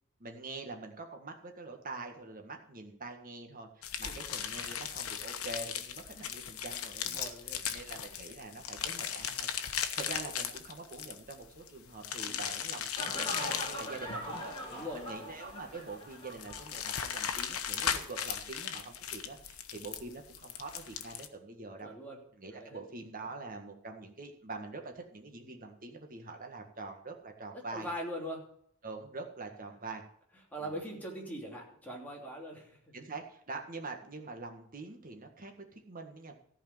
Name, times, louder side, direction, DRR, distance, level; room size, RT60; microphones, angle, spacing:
voice 1, 0.2-21.9 22.4-27.9 28.8-30.0 30.6-30.8 32.9-36.3, right 3 dB, 40° right, 4 dB, 1.7 m, -45 dB
sound 1, 3.8-21.3, left 8 dB, 80° left, 1.0 m, -37 dB
voice 2, 7.0-7.6 12.3-12.4 14.7-15.0 21.8-22.2 22.5-22.8 27.7-28.4 30.5-32.8, equal, 10° left, -2 dB, 3.0 m, -41 dB
sound 2, 13.0-16.8 17.1-17.2, equal, 25° left, 2.3 m, -41 dB
14.0 x 4.9 x 9.3 m, 0.66 s
head